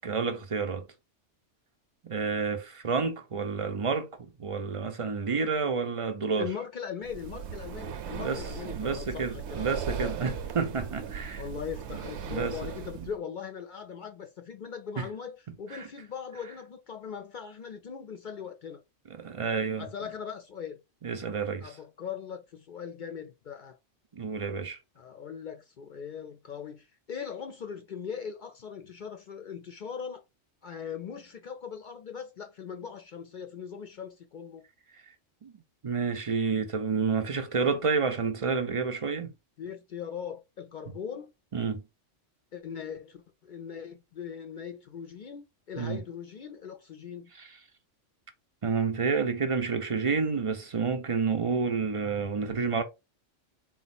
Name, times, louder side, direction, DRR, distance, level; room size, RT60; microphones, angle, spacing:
voice 1, 0.0-0.9 2.0-6.5 8.0-8.4 8.7-11.4 12.3-12.6 13.0-13.1 15.0-15.1 15.7-15.9 19.2-19.9 21.0-21.7 24.1-24.8 35.4-35.5 35.8-39.3 41.5-41.8 45.8-46.0 47.4-47.5 48.6-52.8, right 5 dB, 50° right, 0.4 m, -29 dB
voice 2, 6.4-10.1 11.3-18.8 19.8-20.8 21.6-23.8 25.0-30.2 30.6-34.6 39.6-41.3 42.5-47.3, left 7 dB, 60° left, 0.5 m, -40 dB
Breathing, 7.0-13.1, right 7 dB, 65° right, 0.8 m, -38 dB
3.9 x 2.4 x 4.1 m
omnidirectional pair, 1.3 m